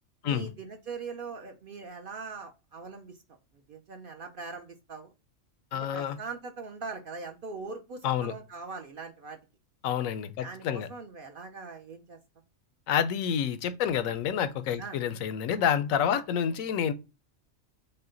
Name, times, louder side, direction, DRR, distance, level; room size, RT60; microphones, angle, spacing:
voice 1, 0.2-3.2 3.7-5.1 5.7-9.4 10.4-12.2 14.8-15.0 16.1-16.2, right 4 dB, 55° right, 0.6 m, -41 dB
voice 2, 5.7-6.2 8.0-8.3 9.8-10.9 12.9-16.9, left 8 dB, 80° left, 1.0 m, -28 dB
5.6 x 2.2 x 3.7 m
omnidirectional pair, 1.4 m